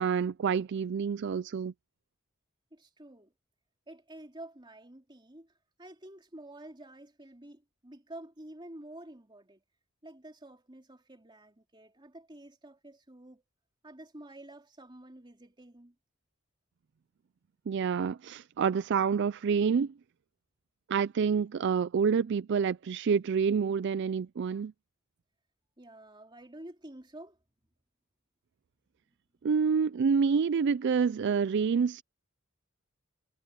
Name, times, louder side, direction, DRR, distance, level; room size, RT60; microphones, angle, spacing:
voice 1, 0.0-1.7 17.7-19.9 20.9-24.7 29.4-32.0, right 6 dB, 55° right, 0.4 m, -27 dB
voice 2, 2.7-3.3 3.9-5.5 5.8-9.6 10.0-13.4 13.8-15.9 25.8-27.4, right 1 dB, 20° right, 3.1 m, -49 dB
head